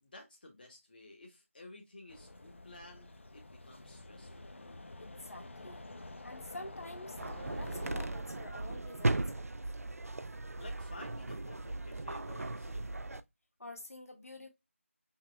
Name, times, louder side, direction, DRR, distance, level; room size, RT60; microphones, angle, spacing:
voice 1, 0.0-4.6 10.6-12.9, left 2 dB, 40° left, 1.0 m, -53 dB
sound 1, 2.1-8.1, left 2 dB, 55° left, 0.8 m, -48 dB
voice 2, 5.0-5.8 6.2-9.7 13.6-14.5, left 1 dB, 85° left, 1.6 m, -48 dB
sound 2, 7.2-13.2, right 2 dB, 85° right, 0.5 m, -37 dB
5.7 x 2.2 x 3.2 m
figure-of-eight pair, 170°, 8 cm